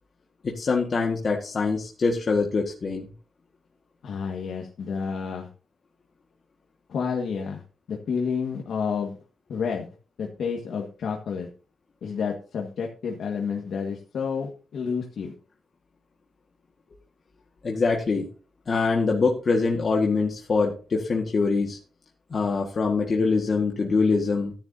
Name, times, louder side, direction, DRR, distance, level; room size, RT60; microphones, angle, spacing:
voice 1, 0.4-3.1 17.6-18.3 18.7-21.8 22.3-24.5, left 4 dB, 45° left, 0 dB, 1.7 m, -24 dB
voice 2, 4.0-5.5 6.9-7.6 7.9-9.2 9.5-9.9 10.2-11.5 12.0-15.3, left 6 dB, 75° left, 0 dB, 1.7 m, -30 dB
14.5 x 10.5 x 2.8 m, 0.37 s
wide cardioid pair, 120°, 0 cm